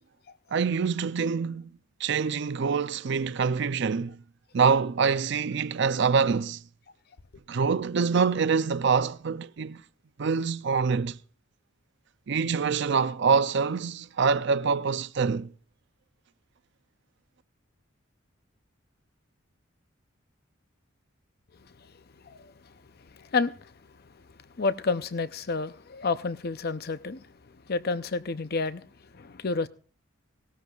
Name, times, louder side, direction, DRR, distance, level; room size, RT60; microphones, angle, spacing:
voice 1, 0.5-1.7 2.0-4.2 4.5-6.6 7.5-9.8 10.2-11.2 12.3-15.5, right 5 dB, 60° right, 0.5 m, -25 dB
voice 2, 22.2-22.7 23.1-23.7 24.5-27.3 27.7-28.9 29.1-29.7, left 4 dB, 50° left, 0.6 m, -30 dB
17.5 x 13.5 x 2.4 m
head